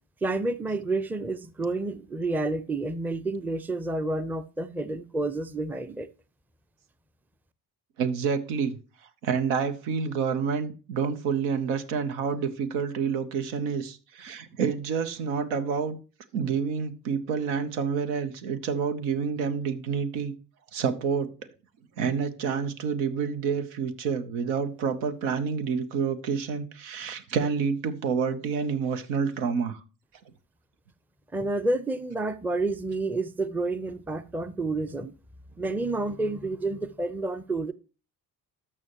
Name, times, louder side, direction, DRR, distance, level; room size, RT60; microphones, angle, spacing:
voice 1, 0.2-6.1 31.3-35.1 35.6-37.7, right 2 dB, 5° right, 0.5 m, -29 dB
voice 2, 8.0-8.8 9.2-16.0 16.3-20.3 20.7-21.3 22.0-29.8, right 6 dB, 75° right, 0.9 m, -28 dB
13.5 x 5.5 x 2.9 m
hypercardioid pair, 50°, 47 cm